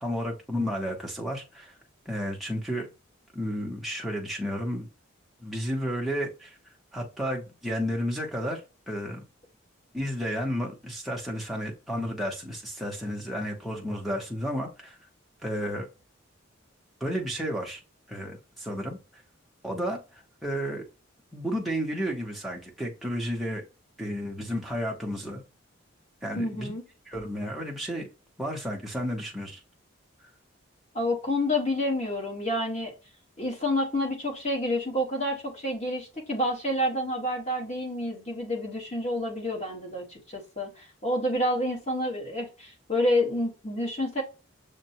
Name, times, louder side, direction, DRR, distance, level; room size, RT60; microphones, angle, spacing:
voice 1, 0.0-1.8 2.1-2.9 3.3-4.9 5.4-6.6 6.9-8.6 8.9-9.2 9.9-15.0 15.4-15.9 17.0-17.8 18.1-19.2 19.6-20.8 21.3-23.6 24.0-25.4 26.2-26.7 27.1-28.1 28.4-29.6, equal, ahead, 0.8 m, -32 dB
voice 2, 26.3-26.8 30.9-32.9 33.4-44.2, left 1 dB, 35° left, 1.4 m, -29 dB
6.4 x 2.2 x 2.7 m
head